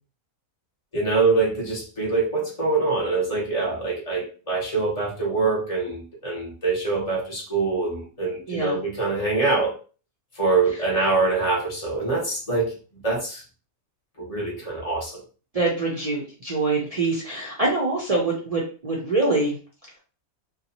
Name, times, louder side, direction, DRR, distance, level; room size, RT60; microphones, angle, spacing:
voice 1, 0.9-9.7 10.4-12.7 13.0-13.4 14.2-15.2, right 3 dB, 30° left, -3 dB, 1.1 m, -24 dB
voice 2, 15.5-19.6, right 3 dB, 60° right, -3 dB, 0.4 m, -24 dB
2.7 x 2.2 x 2.8 m, 0.36 s
omnidirectional pair, 1.5 m